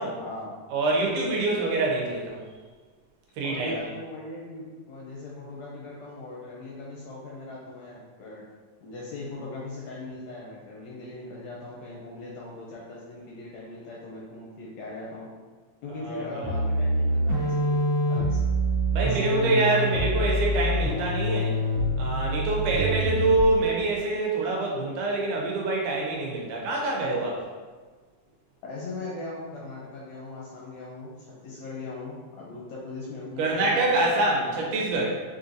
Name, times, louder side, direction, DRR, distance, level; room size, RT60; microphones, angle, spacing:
voice 1, 0.2-0.6 3.4-8.4 8.8-15.3 15.8-18.4 19.0-20.3 28.6-34.7, left 2 dB, 80° left, -4 dB, 1.6 m, -39 dB
voice 2, 0.7-2.4 3.4-3.8 15.9-16.5 18.9-21.6 22.0-27.4 33.4-35.2, right 2 dB, 80° right, -2 dB, 2.2 m, -25 dB
sound 1, 16.4-23.6, equal, 60° right, 1.1 m, -26 dB
5.6 x 2.6 x 2.6 m, 1.4 s
omnidirectional pair, 3.5 m